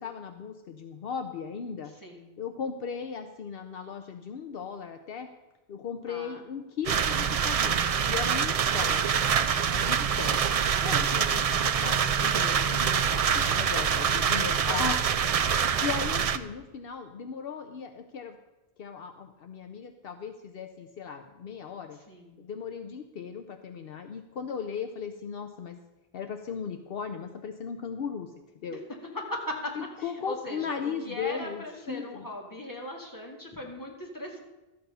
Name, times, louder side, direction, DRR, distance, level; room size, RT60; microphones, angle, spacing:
voice 1, 0.0-1.9 2.4-5.3 5.7-7.8 8.1-9.1 9.7-10.4 10.8-15.5 15.8-18.4 18.8-22.0 22.4-25.8 26.1-28.3 28.6-28.8 29.8-32.2, left 6 dB, 70° left, 7 dB, 0.9 m, -37 dB
voice 2, 1.9-2.3 6.1-6.4 8.7-9.0 10.1-10.5 13.7-14.1 22.1-22.4 28.7-28.8 29.1-29.7 30.0-34.4, left 1 dB, 20° left, 0 dB, 1.9 m, -39 dB
sound 1, 6.9-16.4, right 7 dB, 50° right, 0.4 m, -25 dB
13.0 x 7.9 x 5.4 m, 1.0 s
omnidirectional pair, 1.0 m